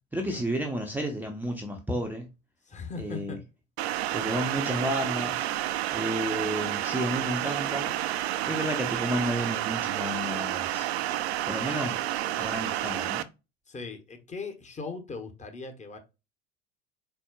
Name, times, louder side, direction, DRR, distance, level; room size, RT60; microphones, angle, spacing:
voice 1, 0.1-2.3 3.0-3.4 4.1-5.5 5.9-7.9 8.5-10.9 11.5-12.0 12.4-13.3, equal, 5° right, 0.7 m, -31 dB
voice 2, 2.6-3.5 8.5-8.6 13.7-16.0, left 4 dB, 20° left, 1.1 m, -39 dB
sound 1, 3.8-13.2, right 13 dB, 60° right, 0.5 m, -30 dB
4.3 x 4.2 x 2.4 m
figure-of-eight pair, 75°, 35 cm